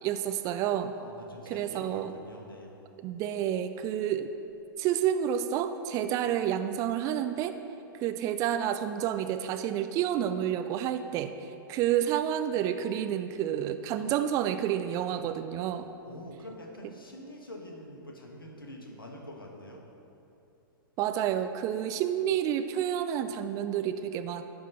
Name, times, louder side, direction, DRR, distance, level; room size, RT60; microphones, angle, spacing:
voice 1, 0.0-0.9 1.5-2.1 3.0-4.3 4.8-7.6 8.0-11.3 11.7-15.9 21.0-24.4, right 10 dB, 30° right, 9 dB, 0.4 m, -29 dB
voice 2, 0.9-2.7 16.0-19.8, left 1 dB, 80° left, 1 dB, 1.2 m, -45 dB
10.5 x 3.7 x 6.4 m, 2.8 s
figure-of-eight pair, 100°, 12 cm